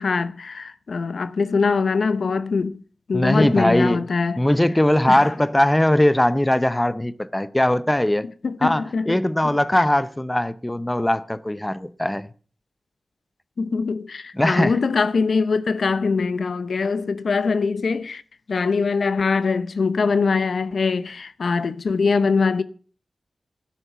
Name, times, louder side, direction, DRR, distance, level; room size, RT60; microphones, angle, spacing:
voice 1, 0.0-2.8 3.1-4.4 5.1-5.3 8.4-9.2 9.4-9.9 13.6-18.2 18.5-22.6, left 4 dB, 75° left, 0.8 m, -23 dB
voice 2, 3.1-4.0 4.4-8.3 8.6-12.3 14.3-14.8, left 1 dB, 15° left, 0.7 m, -20 dB
12.0 x 10.0 x 6.8 m
wide cardioid pair, 70°, 0 cm